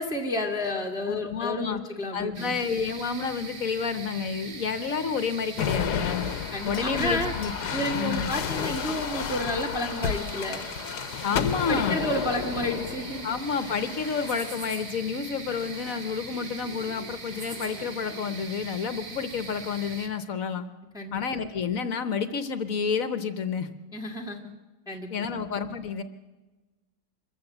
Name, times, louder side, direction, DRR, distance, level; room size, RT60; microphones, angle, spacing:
voice 1, 0.0-2.6 6.5-7.3 7.7-10.6 11.3-13.3 20.9-21.2 23.9-24.5 24.9-25.4, left 1 dB, ahead, 2 dB, 1.8 m, -31 dB
voice 2, 1.1-1.8 2.1-6.3 6.6-7.5 7.9-8.3 11.2-12.0 13.2-20.6 21.1-23.7 25.1-26.0, left 6 dB, 60° left, 11 dB, 1.3 m, -30 dB
sound 1, 2.3-20.1, right 3 dB, 55° right, 2.0 m, -41 dB
sound 2, 5.6-14.9 15.6-16.2 17.3-17.9, left 8 dB, 80° left, 1.4 m, -32 dB
24.5 x 14.5 x 7.9 m, 1.2 s
omnidirectional pair, 1.7 m